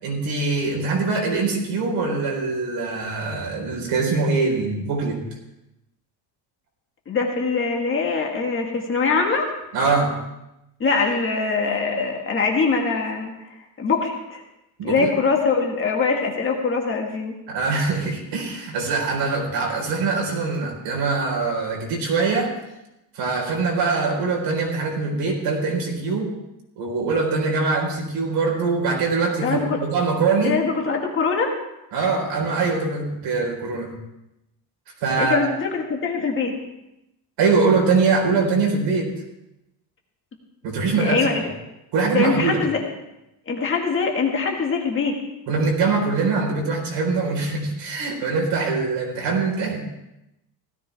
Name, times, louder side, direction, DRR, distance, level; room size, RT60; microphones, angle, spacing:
voice 1, 0.0-5.2 9.7-10.2 14.8-15.1 17.5-22.5 23.1-26.3 26.8-30.6 31.9-33.9 35.0-35.4 37.4-39.1 40.6-41.2 41.9-42.6 45.5-49.8, right 4 dB, 75° right, 0 dB, 4.4 m, -23 dB
voice 2, 7.1-9.5 10.8-13.3 13.8-14.4 14.8-17.3 29.4-29.8 30.4-31.5 35.2-36.6 41.0-41.4 42.1-42.8 43.5-45.2, left 4 dB, 30° left, 1 dB, 1.9 m, -23 dB
16.5 x 14.0 x 3.5 m, 0.90 s
cardioid pair, 170°, 41 cm